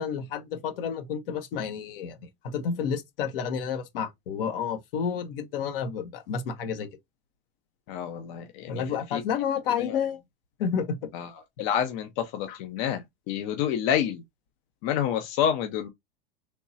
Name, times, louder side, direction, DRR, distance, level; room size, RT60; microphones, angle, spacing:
voice 1, 0.0-2.2 2.4-6.9 8.7-10.2 10.6-11.1 12.5-12.6, left 7 dB, 70° left, 1.1 m, -30 dB
voice 2, 7.9-8.8 9.1-9.2 9.8-10.0 11.1-11.3 11.6-14.2 14.8-15.9, left 9 dB, 50° left, 0.7 m, -28 dB
3.5 x 3.0 x 2.7 m
hypercardioid pair, 110°, 29 cm